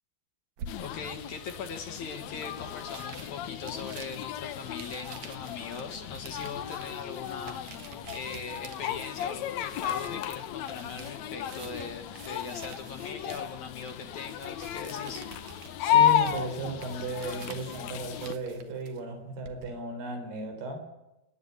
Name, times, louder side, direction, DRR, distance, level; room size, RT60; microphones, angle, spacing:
sound 1, 0.6-19.7, right 6 dB, 55° right, 2.3 m, -49 dB
sound 2, 0.7-18.3, left 10 dB, 85° left, 1.5 m, -33 dB
voice 1, 0.8-15.3, left 5 dB, 55° left, 6 dB, 2.7 m, -40 dB
voice 2, 15.8-20.9, right 3 dB, 80° right, 5 dB, 5.8 m, -35 dB
28.0 x 10.5 x 9.9 m, 0.98 s
omnidirectional pair, 4.5 m